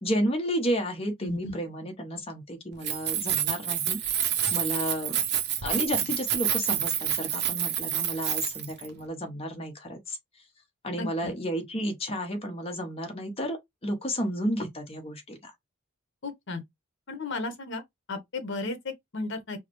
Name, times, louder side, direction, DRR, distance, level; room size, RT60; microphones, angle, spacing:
voice 1, 0.0-4.0 4.5-5.2 5.6-10.2 10.8-13.6 13.8-15.5, equal, 30° left, 0.9 m, -32 dB
voice 2, 1.2-1.6 11.0-11.3 16.2-16.6 17.1-17.8 18.1-19.6, left 2 dB, 60° left, 1.0 m, -34 dB
Keys jangling, 2.7-8.9, right 10 dB, 55° right, 0.6 m, -28 dB
4.8 x 2.1 x 3.0 m
head